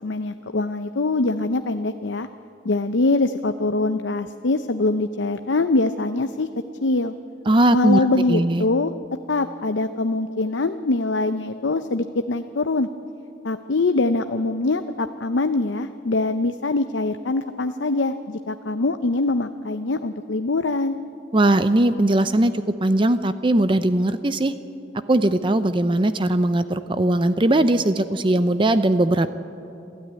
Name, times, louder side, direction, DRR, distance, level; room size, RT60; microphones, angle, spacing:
voice 1, 0.0-2.3 2.6-6.5 6.8-7.1 7.7-8.9 9.3-12.9 13.4-21.0, left 2 dB, 75° left, 9 dB, 0.7 m, -23 dB
voice 2, 7.5-8.0 8.3-8.6 21.3-24.5 25.1-29.3, right 1 dB, 25° right, 11 dB, 0.5 m, -19 dB
26.5 x 13.0 x 9.5 m, 2.7 s
head